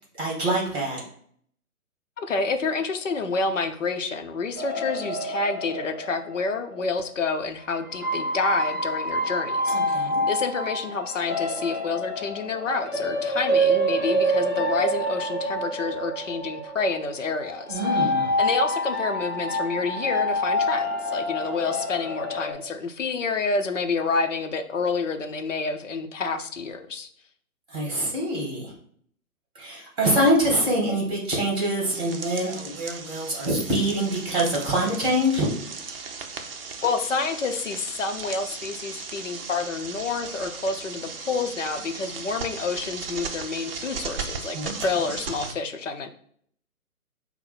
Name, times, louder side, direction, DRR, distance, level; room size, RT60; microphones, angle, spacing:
voice 1, 0.2-1.0 9.7-10.2 17.7-18.3 27.7-28.7 29.6-35.5 44.5-44.7, right 1 dB, 10° right, -2 dB, 1.8 m, -25 dB
voice 2, 2.2-18.1 18.4-27.1 36.8-46.1, left 4 dB, 55° left, 7 dB, 0.7 m, -28 dB
sound 1, 4.6-7.1 7.8-22.5, equal, 10° left, 0.7 m, -27 dB
sound 2, 31.9-45.5, right 5 dB, 40° right, 0.6 m, -37 dB
5.4 x 2.2 x 4.3 m, 0.62 s
figure-of-eight pair, 135°, 45 cm